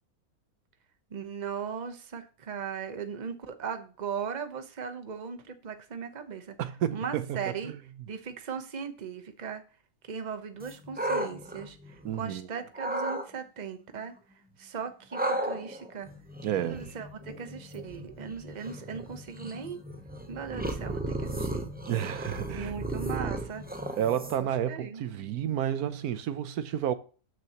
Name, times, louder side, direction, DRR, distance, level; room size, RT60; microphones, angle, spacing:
voice 1, 1.1-6.5 6.9-7.7 8.1-9.6 10.0-14.1 14.6-16.1 16.6-19.8 20.3-21.7 22.5-23.6 24.4-25.0, right 6 dB, 35° right, 0.9 m, -38 dB
voice 2, 6.6-7.8 12.0-12.5 16.4-16.9 21.9-22.7 24.0-26.9, right 10 dB, 85° right, 1.2 m, -31 dB
sound 1, 10.6-12.3 12.7-13.3 15.1-24.6, right 1 dB, 10° right, 0.6 m, -35 dB
13.0 x 6.3 x 3.0 m
omnidirectional pair, 1.5 m